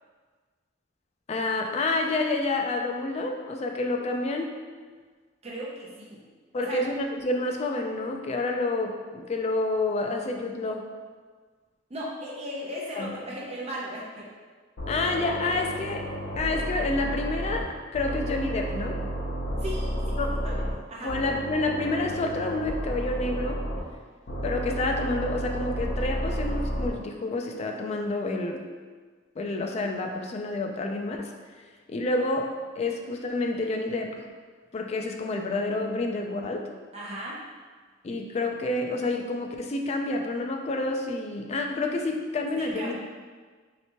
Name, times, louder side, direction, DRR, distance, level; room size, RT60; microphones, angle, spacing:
voice 1, 1.3-4.6 6.5-10.9 13.0-13.1 14.9-19.0 20.2-20.4 21.0-23.6 24.4-28.6 29.4-31.3 31.9-34.3 34.7-36.7 38.0-43.0, left 2 dB, 35° left, 3 dB, 0.3 m, -29 dB
voice 2, 5.4-6.2 6.5-6.9 11.9-14.3 19.6-21.2 36.9-37.4 42.6-43.0, equal, 35° right, -4 dB, 0.7 m, -37 dB
sound 1, 14.8-17.6 17.9-20.7 21.1-23.8 24.3-26.9, equal, 75° left, 0.7 m, -31 dB
3.2 x 2.9 x 2.9 m, 1.5 s
head